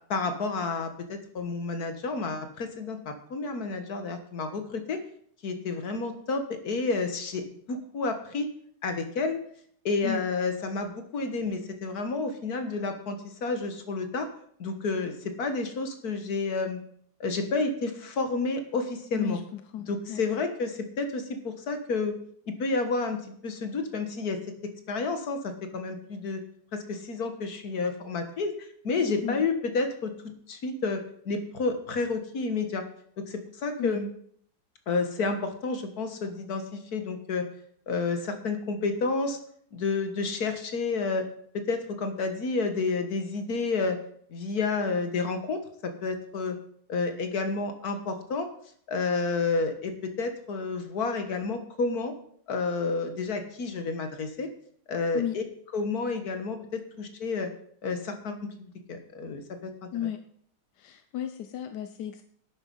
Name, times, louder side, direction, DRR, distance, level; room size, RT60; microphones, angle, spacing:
voice 1, 0.1-5.0 5.4-8.5 8.8-9.4 9.9-14.3 14.6-16.8 17.2-19.4 19.9-22.2 22.5-24.4 24.9-26.4 26.7-28.5 28.8-32.8 33.3-34.1 34.9-37.5 37.9-39.4 39.7-41.3 41.5-44.0 44.3-46.6 46.9-48.5 48.9-52.1 52.5-54.5 54.9-55.4 55.7-57.5 57.8-59.9, left 3 dB, 50° left, 7 dB, 1.8 m, -30 dB
voice 2, 19.1-20.4 29.2-29.4 33.8-34.0 55.1-55.4 59.9-60.2 60.8-62.2, left 11 dB, 65° left, 9 dB, 1.1 m, -34 dB
11.5 x 9.1 x 5.6 m, 0.63 s
omnidirectional pair, 2.3 m